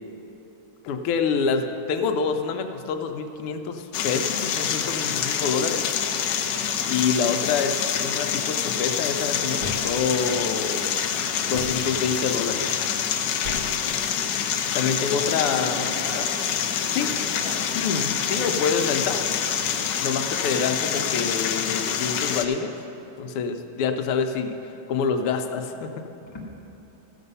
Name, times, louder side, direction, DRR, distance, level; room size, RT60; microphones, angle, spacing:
voice 1, 0.8-5.9 6.9-11.0 11.4-12.7 14.7-15.8 16.1-16.3 16.9-17.1 17.8-19.3 20.0-22.7 23.2-24.6 24.9-26.1, left 5 dB, 90° left, 6 dB, 1.6 m, -26 dB
sound 1, 3.9-22.5, left 8 dB, 70° left, 1.1 m, -26 dB
sound 2, 9.6-11.0 11.5-17.3, left 1 dB, 35° right, 0.8 m, -42 dB
voice 2, 13.7-14.0 15.1-17.6 20.1-20.7 26.3-26.4, left 2 dB, 15° left, -4 dB, 1.3 m, -40 dB
14.0 x 7.0 x 5.4 m, 2.9 s
omnidirectional pair, 2.4 m